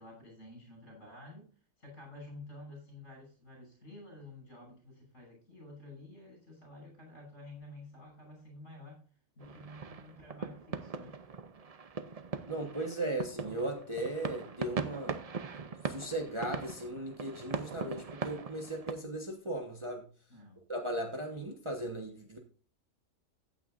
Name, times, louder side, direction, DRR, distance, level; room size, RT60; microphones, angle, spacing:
voice 1, 0.0-1.5 1.8-9.0 9.4-11.2 20.3-20.6, left 1 dB, 60° left, 1 dB, 6.8 m, -51 dB
sound 1, 9.4-18.9, right 5 dB, 40° right, 0.6 m, -40 dB
voice 2, 12.5-15.2 15.9-20.0 20.7-22.4, right 1 dB, 20° right, 2 dB, 1.3 m, -37 dB
15.0 x 9.1 x 2.6 m, 0.37 s
omnidirectional pair, 1.4 m